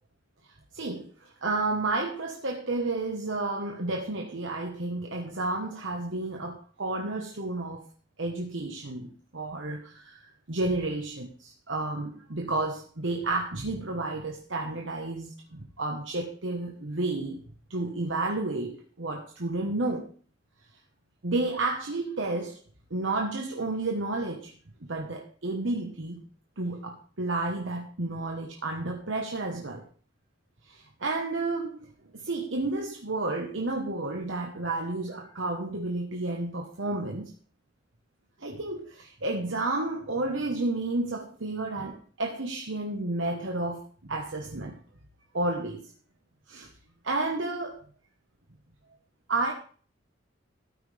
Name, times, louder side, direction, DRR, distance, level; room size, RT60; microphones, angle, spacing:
voice 1, 0.7-7.9 8.2-10.2 10.5-17.4 17.7-20.1 21.2-22.6 22.9-24.5 24.9-26.2 26.6-29.9 30.7-31.9 32.1-37.3 38.4-44.8 45.3-45.9 46.5-46.7 47.0-47.8 49.3-49.5, right 2 dB, 70° right, 2 dB, 1.3 m, -31 dB
13.5 x 9.0 x 3.4 m, 0.42 s
head